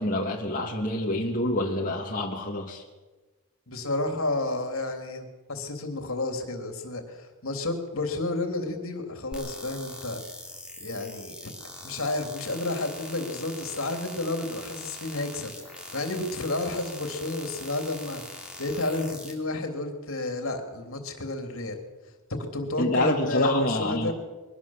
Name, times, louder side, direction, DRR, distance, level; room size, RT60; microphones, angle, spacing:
voice 1, 0.0-2.8 22.8-24.1, left 1 dB, 40° left, -1 dB, 2.3 m, -27 dB
voice 2, 3.7-10.2 10.8-11.5 11.8-18.2 18.6-21.8 22.3-24.1, left 2 dB, 65° left, 5 dB, 3.3 m, -31 dB
sound 1, 9.3-19.3, equal, 5° right, 3.6 m, -42 dB
23.0 x 18.5 x 7.4 m, 1.2 s
head